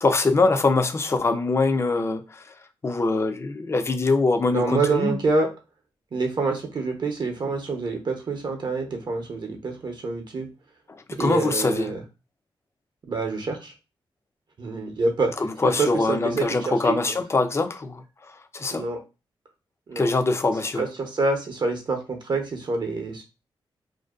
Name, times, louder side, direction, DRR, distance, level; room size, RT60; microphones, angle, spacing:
voice 1, 0.0-2.5 2.8-5.2 10.9-11.9 15.4-18.8 20.0-20.9, left 3 dB, 30° left, 0.4 m, -23 dB
voice 2, 4.5-5.5 6.1-10.5 11.1-12.0 13.1-13.7 14.6-15.3 15.6-17.2 18.7-19.0 19.9-20.1 20.8-23.2, right 3 dB, 55° right, 0.6 m, -27 dB
2.5 x 2.2 x 2.3 m
cardioid pair, 90°, 9 cm